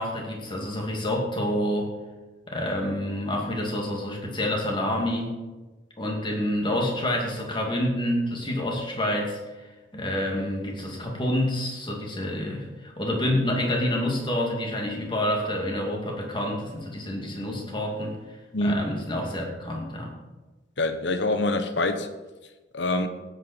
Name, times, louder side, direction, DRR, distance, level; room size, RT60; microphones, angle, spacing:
voice 1, 0.0-1.9 2.5-5.3 6.0-18.2 18.6-20.1, left 1 dB, 25° left, 2.4 m, -28 dB
voice 2, 18.5-18.8 20.8-22.1 22.7-23.1, left 2 dB, 65° left, 1.1 m, -25 dB
17.0 x 8.4 x 4.5 m
head